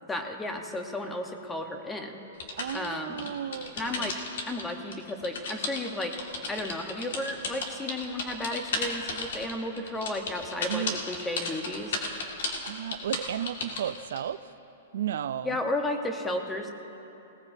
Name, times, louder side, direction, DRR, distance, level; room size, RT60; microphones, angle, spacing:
voice 1, 0.1-2.2 2.7-3.3 3.8-4.1 4.5-6.1 6.5-12.0 15.4-16.7, left 1 dB, 10° left, 4 dB, 0.9 m, -33 dB
sound 1, 2.4-4.6 4.9-14.2, left 3 dB, 70° left, 1.9 m, -34 dB
voice 2, 2.6-4.1 10.7-11.0 12.6-14.4 14.9-15.6, right 10 dB, 70° right, 13 dB, 0.4 m, -33 dB
19.5 x 18.5 x 2.7 m, 3.0 s
hypercardioid pair, 160°, 0 cm